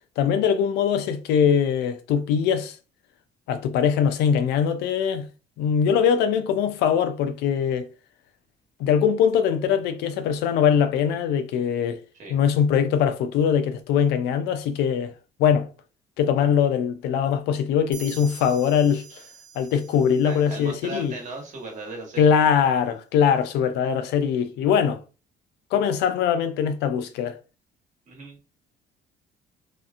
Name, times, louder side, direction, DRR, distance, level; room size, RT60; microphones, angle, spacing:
voice 1, 0.2-2.8 3.5-5.3 5.6-7.9 8.8-12.0 12.3-15.1 15.4-15.7 16.2-19.2 19.6-21.1 22.2-25.0 25.7-27.4, left 8 dB, 80° left, 0.4 m, -22 dB
sound 1, 17.9-21.5, right 7 dB, 75° right, 0.7 m, -46 dB
voice 2, 20.2-22.3 28.1-28.4, right 2 dB, 45° right, 1.3 m, -37 dB
2.8 x 2.4 x 2.4 m
cardioid pair, 110°, 17 cm